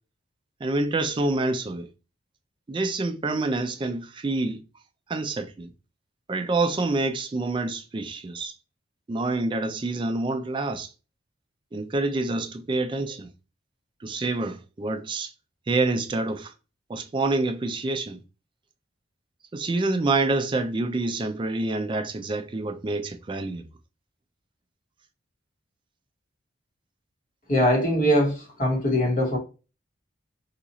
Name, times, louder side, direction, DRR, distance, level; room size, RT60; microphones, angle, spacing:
voice 1, 0.6-1.9 2.7-4.6 5.1-5.7 6.3-8.5 9.1-10.9 11.7-13.3 14.0-15.3 15.7-16.5 16.9-18.2 19.5-23.6, right 2 dB, 25° right, 0.3 m, -27 dB
voice 2, 27.5-29.4, equal, 40° left, 1.1 m, -22 dB
2.9 x 2.4 x 3.9 m
head